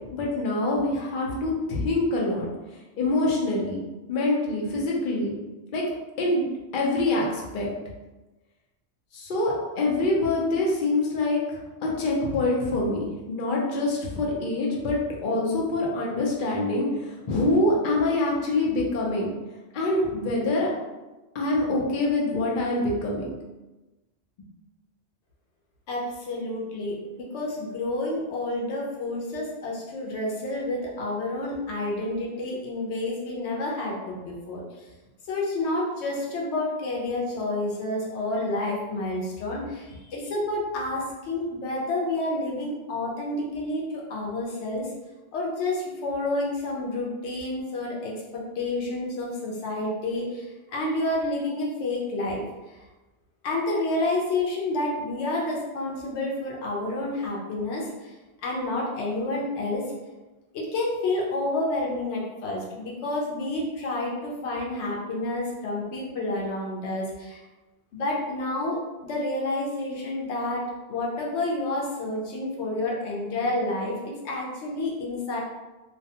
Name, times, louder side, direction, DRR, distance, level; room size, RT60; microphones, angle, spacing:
voice 1, 0.1-2.5 2.9-3.8 4.1-5.3 5.7-5.8 6.2-6.4 6.7-7.7 9.1-19.3 19.7-20.7 21.3-23.3, left 2 dB, 55° left, -3 dB, 0.7 m, -25 dB
voice 2, 25.9-34.9 35.2-44.9 45.3-52.8 53.4-58.1 58.4-59.8 60.5-67.4 67.9-75.4, left 2 dB, 85° left, -3 dB, 0.9 m, -29 dB
2.3 x 2.2 x 2.7 m, 1.1 s
omnidirectional pair, 1.1 m